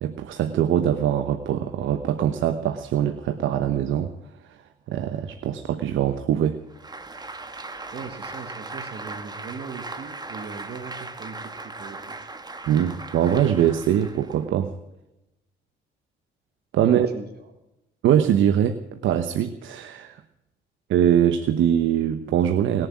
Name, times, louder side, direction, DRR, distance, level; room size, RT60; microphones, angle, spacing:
voice 1, 0.0-4.1 4.9-6.6 12.7-14.7 16.7-17.1 18.0-20.2 20.9-22.9, right 10 dB, 80° right, 9 dB, 1.0 m, -22 dB
Applause, 6.7-14.4, right 3 dB, 20° right, 1.5 m, -38 dB
voice 2, 7.9-12.2 16.8-17.5, right 5 dB, 55° right, 6 dB, 1.7 m, -39 dB
20.0 x 7.6 x 9.6 m, 0.93 s
cardioid pair, 90°, 20 cm